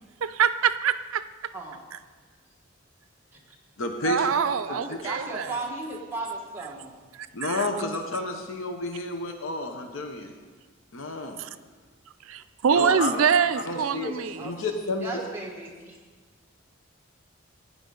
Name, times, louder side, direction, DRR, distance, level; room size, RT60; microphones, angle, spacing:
voice 1, 0.2-1.2 4.0-5.5 7.4-7.6 11.4-11.5 12.3-14.5, right 7 dB, 85° right, 13 dB, 0.5 m, -24 dB
voice 2, 3.8-4.3 4.7-5.0 7.3-10.3 10.9-11.4 12.7-13.3 13.6-15.2, left 2 dB, 75° left, 4 dB, 0.9 m, -31 dB
voice 3, 4.6-7.0 13.3-13.5 13.9-14.5 15.0-16.0, right 2 dB, 10° right, -3 dB, 1.6 m, -36 dB
15.5 x 9.6 x 3.9 m, 1.4 s
head